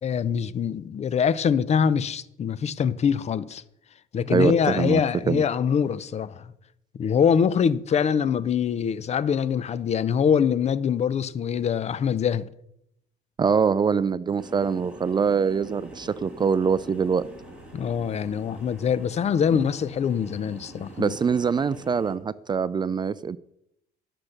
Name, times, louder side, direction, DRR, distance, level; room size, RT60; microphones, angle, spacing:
voice 1, 0.0-3.6 4.1-6.5 6.9-12.5 17.7-21.2, left 7 dB, 40° left, 0.6 m, -24 dB
voice 2, 4.3-5.0 5.3-5.4 13.4-17.3 21.0-23.4, right 6 dB, 25° right, 0.4 m, -24 dB
sound 1, 14.4-22.1, right 1 dB, 5° right, 3.6 m, -45 dB
12.0 x 6.0 x 6.5 m
cardioid pair, 110°, 17 cm